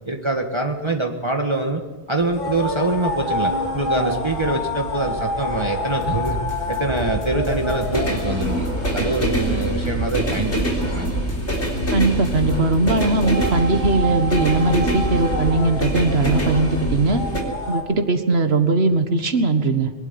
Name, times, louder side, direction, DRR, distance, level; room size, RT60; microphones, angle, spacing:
voice 1, 0.1-1.8 2.1-6.4 6.7-8.7 8.9-10.6 10.9-11.1, right 2 dB, 25° right, 3 dB, 1.6 m, -24 dB
sound 1, 2.3-17.8, left 1 dB, 40° left, 3.4 m, -29 dB
sound 2, 2.7-17.4, equal, 80° left, 4.2 m, -26 dB
sound 3, 6.0-13.6, equal, 60° left, 3.1 m, -35 dB
voice 2, 11.9-17.2 17.7-19.9, right 3 dB, 65° right, 8 dB, 1.8 m, -19 dB
22.5 x 12.0 x 9.6 m, 1.3 s
omnidirectional pair, 1.2 m